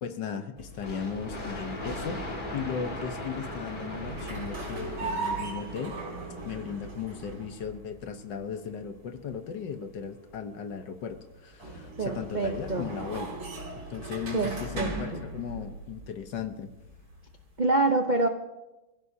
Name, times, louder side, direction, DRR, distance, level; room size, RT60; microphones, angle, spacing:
voice 1, 0.0-6.0 6.4-13.3 13.9-16.7, left 7 dB, 65° left, 8 dB, 1.5 m, -37 dB
sound 1, 0.6-17.6, right 2 dB, 80° right, 4.4 m, -40 dB
sound 2, 0.8-6.4, left 1 dB, 25° left, 2.0 m, -38 dB
voice 2, 12.0-12.9 14.3-15.2 17.6-18.3, right 2 dB, 60° right, 4 dB, 0.4 m, -26 dB
25.5 x 16.0 x 2.8 m, 1.0 s
omnidirectional pair, 2.2 m